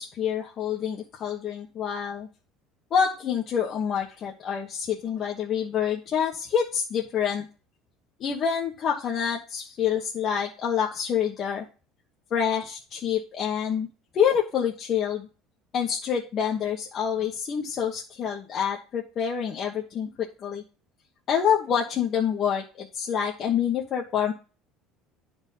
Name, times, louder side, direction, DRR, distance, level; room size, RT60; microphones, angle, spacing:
voice 1, 0.0-2.3 2.9-7.5 8.2-11.6 12.3-13.9 14.1-15.3 15.7-20.6 21.3-24.3, left 8 dB, 35° left, -2 dB, 1.3 m, -27 dB
10.5 x 4.6 x 5.5 m, 0.35 s
cardioid pair, 155°, 0 cm